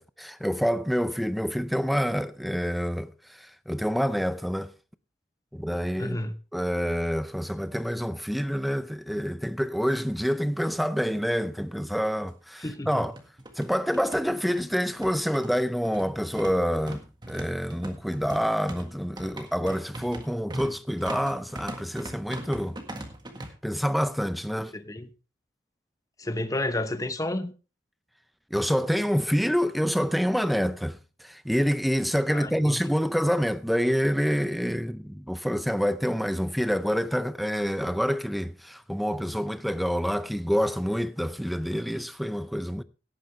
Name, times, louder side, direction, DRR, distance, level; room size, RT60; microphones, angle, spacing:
voice 1, 0.0-4.7 5.5-6.2 6.5-13.1 13.6-22.8 23.6-24.7 28.5-42.8, equal, ahead, 0.5 m, -27 dB
voice 2, 6.0-6.4 12.6-13.1 24.7-25.1 26.2-27.5 32.3-32.9, left 1 dB, 20° left, 0.9 m, -31 dB
sound 1, 11.4-11.5 11.8-11.9 12.7-23.5, right 1 dB, 25° right, 1.7 m, -41 dB
17.0 x 9.3 x 3.3 m
head